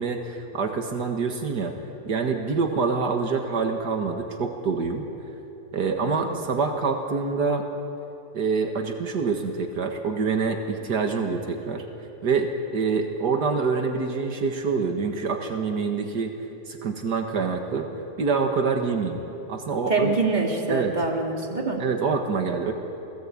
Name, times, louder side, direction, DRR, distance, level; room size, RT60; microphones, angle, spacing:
voice 1, 0.0-1.7 2.1-5.0 5.7-7.7 8.3-11.9 12.2-16.3 16.7-17.9 18.2-19.2 19.5-20.1 20.7-21.0 21.8-22.7, right 4 dB, 80° right, 4 dB, 2.2 m, -26 dB
voice 2, 19.9-21.8, right 3 dB, 25° right, 1 dB, 3.0 m, -25 dB
27.5 x 19.0 x 8.8 m, 2.9 s
omnidirectional pair, 1.8 m